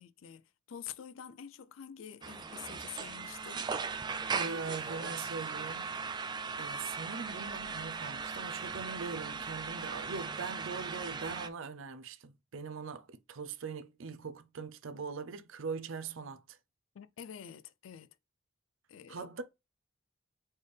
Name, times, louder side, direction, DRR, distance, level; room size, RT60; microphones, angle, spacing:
voice 1, 0.0-3.7 9.3-9.4 16.9-18.2 18.9-19.3, left 9 dB, 75° left, 0.4 m, -48 dB
sound 1, 2.2-11.5, right 5 dB, 20° right, 0.3 m, -38 dB
voice 2, 4.3-6.0 6.6-16.6 19.1-19.4, right 5 dB, 75° right, 0.5 m, -41 dB
4.3 x 3.3 x 3.4 m
head